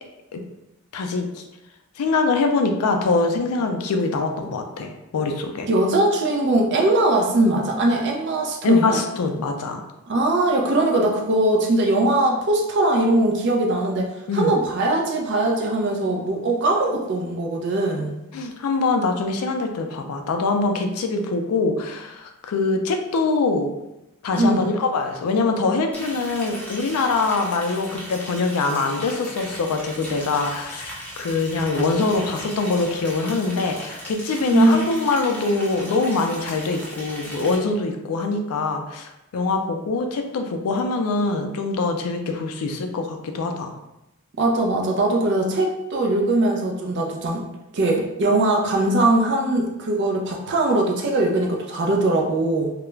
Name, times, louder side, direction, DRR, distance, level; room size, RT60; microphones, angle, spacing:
voice 1, 0.9-1.4 2.0-5.7 8.6-9.8 14.3-14.5 18.3-23.7 24.2-43.7, left 3 dB, 80° left, 5 dB, 0.4 m, -23 dB
voice 2, 5.7-9.0 10.1-18.1 24.4-24.7 34.5-34.8 44.4-47.4 47.7-52.7, right 2 dB, 50° right, 1 dB, 0.4 m, -21 dB
Liquid, 25.9-37.6, equal, 5° left, 0.5 m, -37 dB
2.3 x 2.0 x 3.1 m, 0.92 s
head